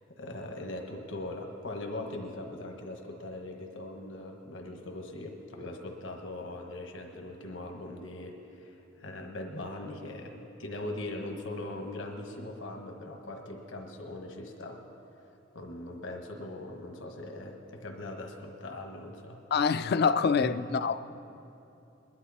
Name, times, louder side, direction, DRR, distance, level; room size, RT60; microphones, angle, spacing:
voice 1, 0.0-14.8 15.5-19.4 20.4-20.5, left 1 dB, 70° left, 2 dB, 1.4 m, -40 dB
voice 2, 19.5-21.0, left 5 dB, 50° left, 12 dB, 0.4 m, -26 dB
21.5 x 11.5 x 4.2 m, 2.8 s
head